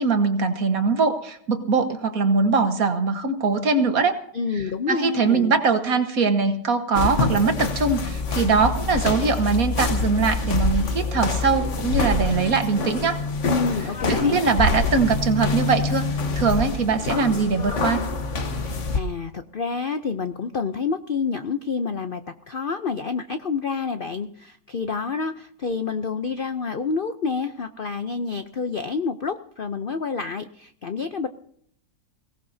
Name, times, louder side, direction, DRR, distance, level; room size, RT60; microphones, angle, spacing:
voice 1, 0.0-4.1 4.9-13.2 14.1-16.1 16.4-18.0, right 4 dB, 55° right, 7 dB, 1.7 m, -22 dB
voice 2, 4.3-5.6 13.5-14.4 18.6-22.2 22.5-31.3, left 5 dB, 75° left, 9 dB, 0.5 m, -28 dB
sound 1, 7.0-19.0, left 3 dB, 45° left, 1.4 m, -26 dB
23.0 x 18.0 x 2.7 m, 0.67 s
omnidirectional pair, 1.9 m